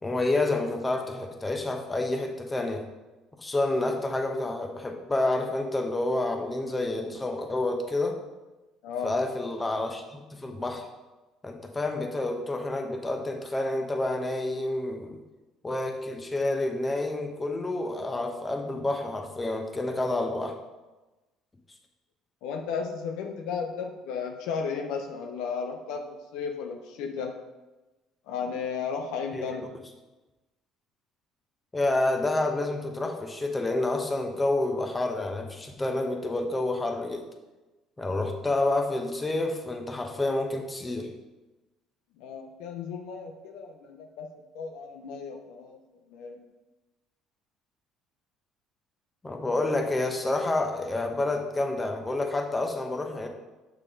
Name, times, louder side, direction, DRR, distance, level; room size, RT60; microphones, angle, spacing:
voice 1, 0.0-2.8 3.4-8.2 9.0-10.9 11.4-15.2 15.6-20.6 29.3-29.4 31.7-37.3 38.0-41.1 49.2-53.3, left 2 dB, 20° left, 3 dB, 1.1 m, -29 dB
voice 2, 8.8-9.2 22.4-27.3 28.3-29.6 42.2-44.3 44.5-45.8 46.1-46.4, left 6 dB, 80° left, 4 dB, 0.6 m, -34 dB
6.5 x 4.0 x 5.0 m, 1.1 s
supercardioid pair, 70°, 0 cm